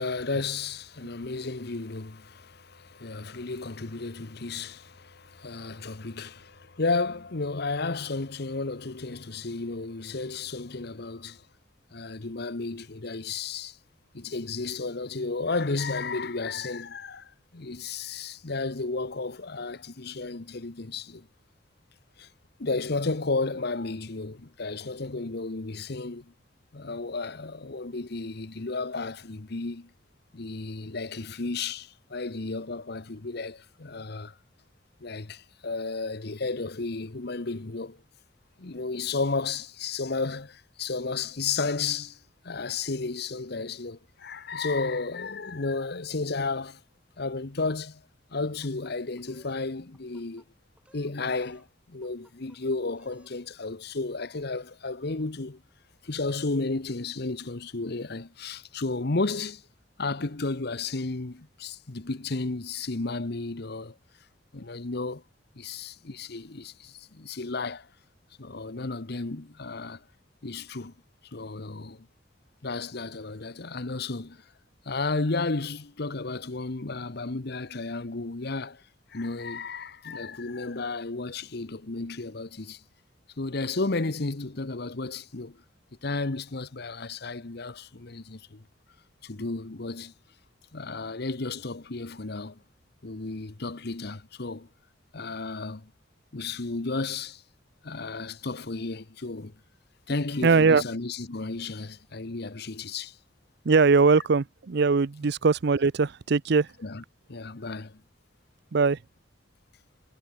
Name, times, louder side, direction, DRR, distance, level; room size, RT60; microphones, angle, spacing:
voice 1, 0.0-11.5 11.9-13.8 14.1-21.3 22.2-22.3 22.6-26.3 26.7-29.9 30.3-34.4 35.0-38.0 38.6-42.2 42.4-46.8 47.2-48.0 48.3-50.4 50.9-55.6 56.0-59.6 60.0-63.9 64.5-65.2 65.6-67.9 68.4-70.0 70.4-70.9 71.3-72.1 72.6-74.4 74.8-78.8 79.1-82.8 83.4-85.6 86.0-88.6 89.2-90.1 90.7-92.6 93.0-94.7 95.1-95.9 96.3-97.4 97.8-99.6 100.1-103.2 106.8-107.0 107.3-108.0, left 3 dB, 60° left, 1.1 m, -33 dB
sound 1, 48.4-49.6 49.9-50.5 50.8-51.7 52.0-52.6 52.9-53.4, right 1 dB, 5° right, 6.6 m, -61 dB
voice 2, 100.4-100.8 103.6-106.7 108.7-109.0, right 4 dB, 60° right, 0.6 m, -21 dB
head